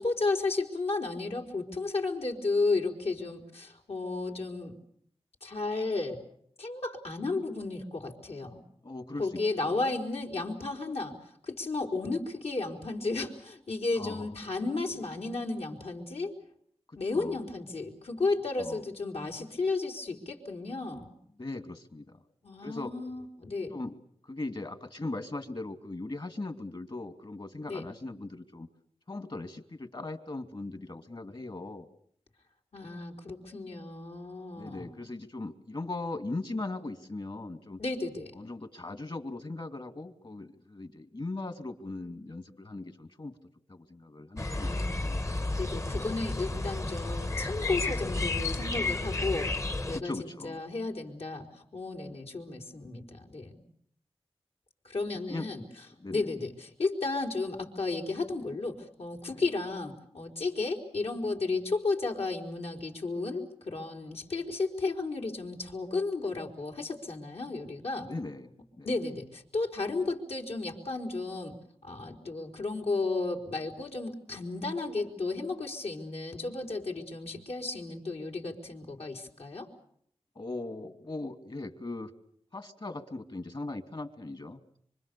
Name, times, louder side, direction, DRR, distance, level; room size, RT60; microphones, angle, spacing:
voice 1, 0.0-4.7 5.4-6.2 6.6-8.6 9.2-16.3 17.0-21.1 22.4-23.8 27.7-27.8 32.7-34.9 37.8-38.3 44.6-44.9 45.6-49.5 49.9-51.5 51.7-53.6 54.8-55.6 56.1-68.1 68.8-71.5 71.8-79.7, left 3 dB, 75° left, 1 dB, 4.3 m, -33 dB
voice 2, 8.8-9.8 13.9-14.3 16.9-17.4 18.6-18.8 21.4-22.2 22.6-22.9 23.7-24.0 24.2-28.7 29.1-31.9 34.5-37.8 38.3-43.4 43.7-45.2 49.9-50.6 55.3-55.5 56.0-56.3 59.3-59.4 68.0-68.5 68.8-68.9 80.3-82.1 82.5-84.6, left 2 dB, 50° left, 7 dB, 2.7 m, -39 dB
sound 1, 44.4-50.0, left 2 dB, 30° left, 1.0 m, -32 dB
26.0 x 25.0 x 7.0 m, 0.67 s
wide cardioid pair, 60°, 11 cm